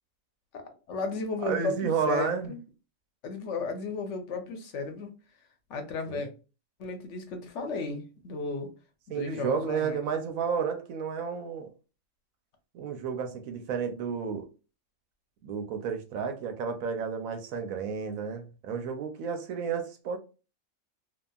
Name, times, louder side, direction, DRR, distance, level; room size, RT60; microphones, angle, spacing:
voice 1, 0.9-2.6 3.2-5.1 5.7-6.3 6.8-8.7 9.1-10.0, left 3 dB, 65° left, 0.9 m, -34 dB
voice 2, 1.4-2.5 6.1-6.3 9.1-11.7 12.7-14.5 15.4-20.2, right 6 dB, 80° right, 1.0 m, -31 dB
2.7 x 2.4 x 2.3 m
omnidirectional pair, 1.4 m